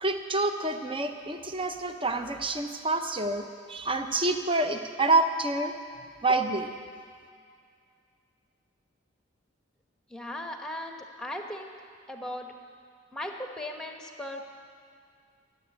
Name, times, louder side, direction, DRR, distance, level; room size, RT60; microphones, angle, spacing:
voice 1, 0.0-5.8 6.2-6.7, right 2 dB, 25° right, 6 dB, 0.7 m, -27 dB
voice 2, 10.1-11.7 12.1-12.5 13.1-14.5, left 1 dB, 5° left, 3 dB, 1.0 m, -37 dB
14.5 x 7.9 x 10.0 m, 2.3 s
head